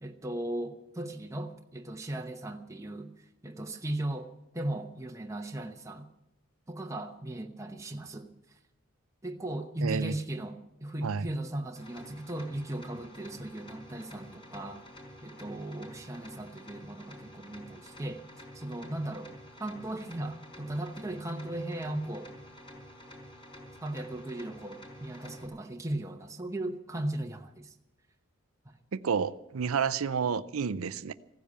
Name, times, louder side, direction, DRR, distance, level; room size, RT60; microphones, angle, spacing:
voice 1, 0.0-6.1 6.7-8.3 9.2-14.8 15.2-18.2 18.5-19.3 19.6-22.3 23.8-27.7, right 1 dB, 15° right, 0.9 m, -37 dB
voice 2, 9.8-10.1 11.0-11.3 28.9-31.1, right 6 dB, 70° right, 0.5 m, -30 dB
sound 1, 11.8-25.5, left 1 dB, 25° left, 4.4 m, -49 dB
15.5 x 10.0 x 8.4 m
head